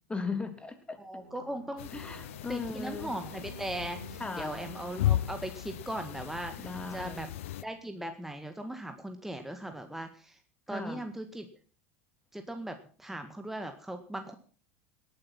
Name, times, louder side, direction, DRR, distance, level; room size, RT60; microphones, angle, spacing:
voice 1, 0.1-1.0 1.9-3.1 4.2-4.6 6.6-7.3 10.7-11.0, left 4 dB, 15° left, 7 dB, 3.3 m, -37 dB
voice 2, 1.0-1.9 2.5-6.5 6.9-7.3 7.6-10.4 10.7-11.5 12.3-14.3, right 1 dB, 5° right, 6 dB, 1.8 m, -38 dB
sound 1, 1.1-8.5, right 5 dB, 90° right, 1.7 m, -53 dB
sound 2, 1.8-7.6, left 13 dB, 75° left, 0.6 m, -36 dB
18.5 x 9.6 x 6.0 m, 0.41 s
hypercardioid pair, 85°, 7 cm